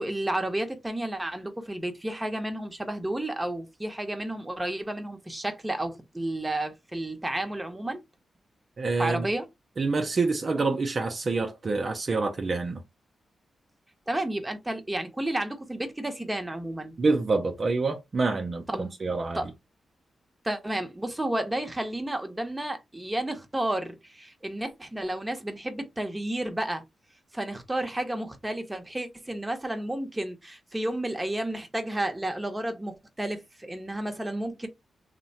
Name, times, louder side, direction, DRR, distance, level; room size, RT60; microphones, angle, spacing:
voice 1, 0.0-8.0 9.0-9.5 14.1-17.0 18.7-18.9 19.3-19.5 20.4-26.8 27.3-34.7, right 1 dB, 15° right, 0.8 m, -31 dB
voice 2, 8.8-9.3 9.8-12.8 17.0-19.4, right 3 dB, 50° right, 0.5 m, -27 dB
2.8 x 2.1 x 2.7 m
cardioid pair, 60°, 0 cm